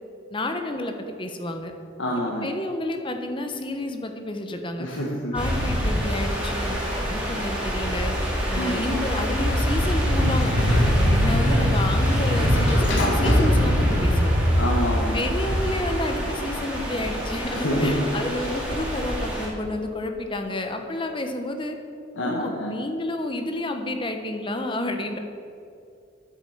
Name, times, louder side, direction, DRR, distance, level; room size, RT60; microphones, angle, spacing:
voice 1, 0.3-1.7 2.1-4.9 5.3-6.8 7.1-8.1 8.5-10.5 11.0-14.3 14.9-21.8 22.2-25.2, left 1 dB, 25° left, 5 dB, 1.0 m, -30 dB
voice 2, 2.0-2.5 4.8-5.4 8.5-9.0 14.6-15.3 17.5-17.9 22.2-22.7, equal, 85° left, -3 dB, 1.5 m, -27 dB
sound 1, 5.3-19.5, equal, 5° right, 2.6 m, -24 dB
Sliding door, 9.6-14.7, left 1 dB, 70° left, 2.1 m, -27 dB
9.6 x 8.6 x 7.3 m, 2.5 s
head